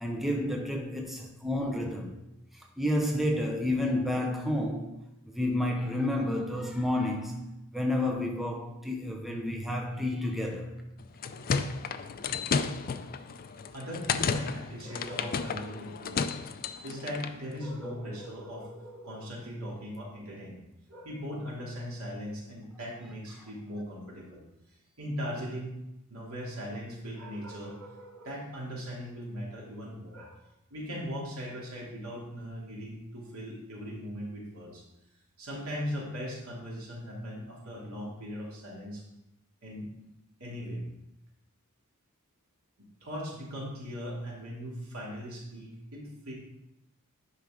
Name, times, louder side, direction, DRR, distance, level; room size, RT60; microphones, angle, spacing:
voice 1, 0.0-2.2 2.5-5.0 5.3-10.8, left 1 dB, ahead, 0.6 m, -30 dB
sound 1, 11.0-17.4, left 5 dB, 40° left, 0.4 m, -33 dB
voice 2, 13.7-16.3 16.8-20.6 20.9-24.4 25.0-25.8 26.1-30.4 30.7-34.8 35.4-39.0 39.6-39.9 40.4-40.8 43.0-46.3, equal, 70° right, 2.7 m, -39 dB
9.5 x 5.6 x 3.7 m
head